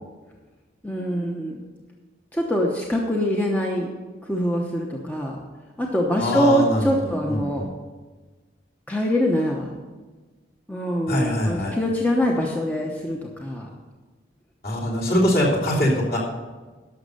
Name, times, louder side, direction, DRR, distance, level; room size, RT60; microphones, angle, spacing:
voice 1, 0.8-1.7 2.3-3.9 4.2-5.4 5.8-7.6 8.9-9.7 10.7-13.7, equal, 10° left, -1 dB, 0.9 m, -24 dB
voice 2, 6.2-7.7 11.1-11.7 14.6-16.2, left 1 dB, 50° left, -4 dB, 3.1 m, -23 dB
11.5 x 6.6 x 6.6 m, 1.3 s
head